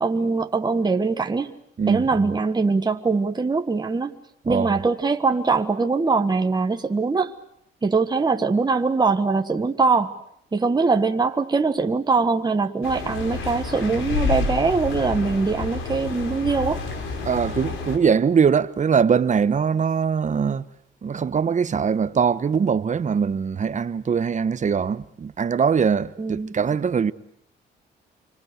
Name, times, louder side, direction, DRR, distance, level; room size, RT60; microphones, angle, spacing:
voice 1, 0.0-1.5 1.9-4.1 4.4-7.3 7.8-10.1 10.5-16.8 26.2-26.5, right 4 dB, 20° right, 1.5 m, -22 dB
voice 2, 1.8-2.3 4.5-4.7 17.2-20.6 21.0-27.1, right 6 dB, 40° right, 1.1 m, -22 dB
sound 1, 12.8-18.0, left 4 dB, 85° left, 4.8 m, -29 dB
28.0 x 25.0 x 8.2 m
cardioid pair, 90°, 20 cm